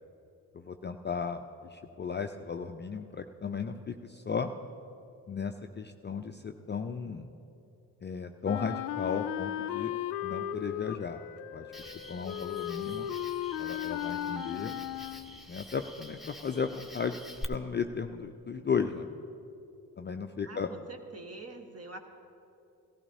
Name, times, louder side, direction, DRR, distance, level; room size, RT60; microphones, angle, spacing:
voice 1, 0.5-1.4 1.7-4.5 5.3-7.3 8.0-9.9 10.2-11.2 11.5-13.1 13.6-14.8 15.5-17.2 17.5-19.1 20.0-20.7, left 6 dB, 25° left, 6 dB, 0.5 m, -35 dB
Wind instrument woodwind instrument, 8.4-15.4, left 11 dB, 85° left, 0.5 m, -36 dB
Cricket, 11.7-17.4, left 1 dB, ahead, 0.9 m, -47 dB
voice 2, 20.5-22.0, right 2 dB, 30° right, 5 dB, 1.4 m, -45 dB
17.0 x 15.0 x 2.8 m, 2.8 s
hypercardioid pair, 45°, 45 cm